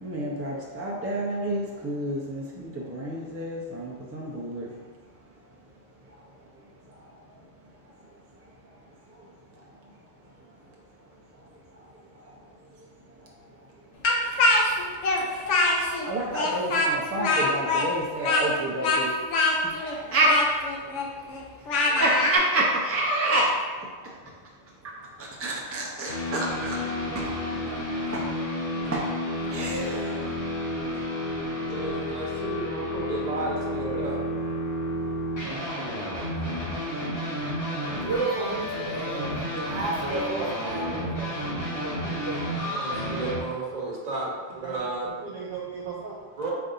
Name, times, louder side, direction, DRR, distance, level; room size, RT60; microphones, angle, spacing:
voice 1, 0.0-4.7 16.1-19.1 19.8-20.4 21.9-23.5 24.8-24.9 25.2-26.8 27.1-27.3 28.1-28.3 28.9-29.1 29.5-30.1, right 1 dB, 15° right, -3 dB, 0.5 m, -28 dB
Speech, 14.0-16.1 16.3-22.4, left 2 dB, 85° left, 1.0 m, -24 dB
sound 1, 26.1-43.4, left 1 dB, 70° left, 1.6 m, -31 dB
voice 2, 31.7-34.2 42.5-45.1 46.4-46.5, right 2 dB, 40° right, -4 dB, 1.0 m, -33 dB
voice 3, 37.7-41.6, right 3 dB, 85° right, -2 dB, 1.2 m, -32 dB
voice 4, 40.1-40.8 41.7-42.4 44.6-46.2, right 4 dB, 60° right, -3 dB, 0.7 m, -36 dB
3.9 x 3.5 x 3.9 m, 1.5 s
omnidirectional pair, 1.2 m